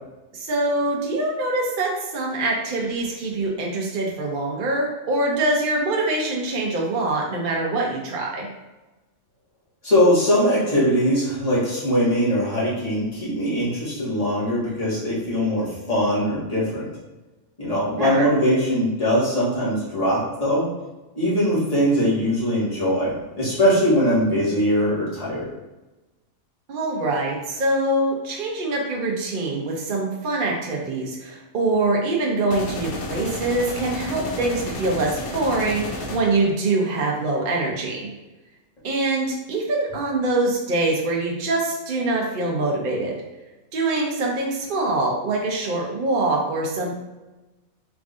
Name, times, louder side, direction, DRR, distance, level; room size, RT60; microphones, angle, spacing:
voice 1, 0.3-8.5 18.0-18.3 26.7-38.0 38.8-43.2 43.7-47.0, right 2 dB, 50° right, -1 dB, 0.7 m, -24 dB
voice 2, 9.8-16.9 17.6-20.7 21.1-25.5, equal, 25° left, -8 dB, 1.6 m, -21 dB
sound 1, 32.5-36.5, left 2 dB, 80° left, 1.1 m, -32 dB
3.6 x 3.6 x 2.5 m, 1.1 s
omnidirectional pair, 1.5 m